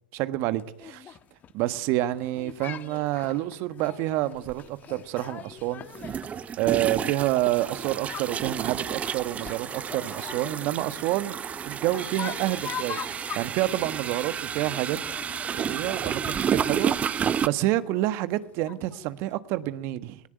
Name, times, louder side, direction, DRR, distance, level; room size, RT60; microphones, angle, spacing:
voice 1, 0.1-1.1 1.5-5.9 6.6-13.0 13.3-15.0 15.5-20.2, right 15 dB, 55° right, 1.4 m, -28 dB
sound 1, 0.6-19.4, left 9 dB, 35° left, 1.3 m, -44 dB
sound 2, 4.5-4.6 5.9-17.5, right 8 dB, 25° right, 0.8 m, -31 dB
19.0 x 18.5 x 9.3 m
hypercardioid pair, 95°, 5 cm